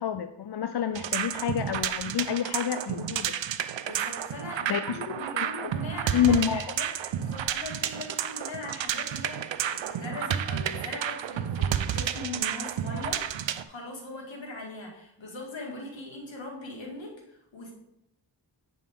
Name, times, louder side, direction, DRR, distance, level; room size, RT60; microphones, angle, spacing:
voice 1, 0.0-3.3 4.7-5.0 5.3-5.7 6.1-6.6, left 8 dB, 60° left, 9 dB, 0.5 m, -28 dB
sound 1, 0.9-13.6, right 9 dB, 90° right, 0.5 m, -31 dB
voice 2, 3.8-6.9 7.1-17.7, left 2 dB, 85° left, -2 dB, 2.1 m, -40 dB
8.4 x 5.4 x 3.7 m, 0.83 s
wide cardioid pair, 65°, 44 cm